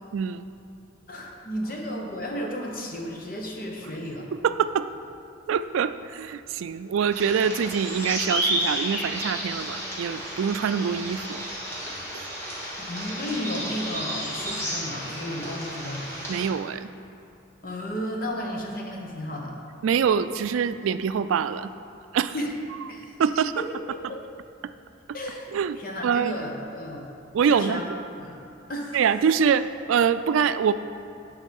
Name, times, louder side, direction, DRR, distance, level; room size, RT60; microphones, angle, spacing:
voice 1, 0.1-0.4 4.4-4.9 5.5-11.4 12.1-12.3 16.3-16.9 19.8-21.7 22.1-22.3 23.2-23.6 25.5-25.8 26.0-26.4 27.3-28.0 28.9-30.7, right 7 dB, 90° right, 13 dB, 0.3 m, -24 dB
voice 2, 1.1-4.3 12.8-16.0 17.6-19.6 22.3-22.5 22.9-24.2 25.1-27.1 27.4-27.9 28.2-28.4 28.7-29.0, equal, 45° left, 0 dB, 1.1 m, -33 dB
sound 1, 7.1-16.5, equal, 15° left, 1.7 m, -32 dB
9.4 x 5.4 x 5.3 m, 2.7 s
head